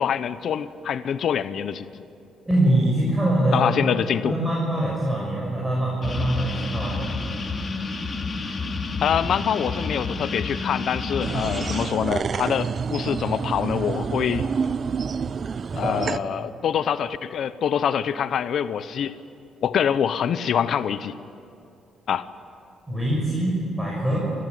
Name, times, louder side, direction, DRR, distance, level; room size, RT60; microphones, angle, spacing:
voice 1, 0.0-2.0 3.5-4.3 9.0-14.5 15.8-19.2 19.6-21.1 22.1-22.3, left 8 dB, 65° left, 14 dB, 0.8 m, -25 dB
voice 2, 2.5-3.8 4.2-7.2 15.7-16.1 22.9-24.3, right 1 dB, 15° right, -5 dB, 6.3 m, -23 dB
sound 1, 6.0-11.8, left 3 dB, 35° left, 2.5 m, -30 dB
sound 2, 11.2-16.2, right 6 dB, 45° right, 0.5 m, -28 dB
29.5 x 14.5 x 9.4 m, 2.6 s
cardioid pair, 90°, 0 cm